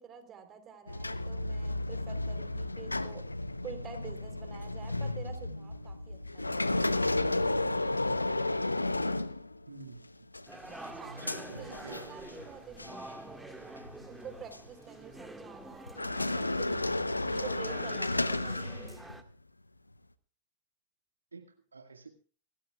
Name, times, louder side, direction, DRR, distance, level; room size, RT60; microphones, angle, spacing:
voice 1, 0.0-3.3 3.6-7.0 10.6-13.8 14.1-16.8 17.1-18.6, right 7 dB, 25° right, 3.6 m, -49 dB
sound 1, 0.9-9.9 10.3-12.5 12.8-13.0 13.8-14.7 15.9-19.2, left 2 dB, 90° left, 0.8 m, -33 dB
voice 2, 9.7-10.1 10.9-12.2 21.3-22.1, right 4 dB, 80° right, 1.8 m, -49 dB
sound 2, 10.5-19.2, right 2 dB, 5° right, 1.8 m, -47 dB
26.0 x 14.0 x 2.4 m
figure-of-eight pair, 95°, 0 cm